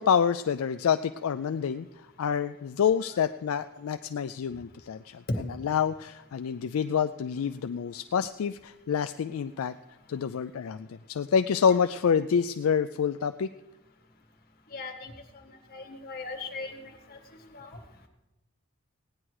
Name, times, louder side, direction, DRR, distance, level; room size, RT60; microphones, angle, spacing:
voice 1, 0.0-1.9 2.2-5.2 5.6-9.7 10.1-13.5, left 7 dB, 70° left, 11 dB, 0.4 m, -27 dB
voice 2, 14.7-15.1 15.7-16.7 17.5-17.7, left 4 dB, 45° left, 3 dB, 1.8 m, -38 dB
17.0 x 9.9 x 4.7 m, 1.0 s
head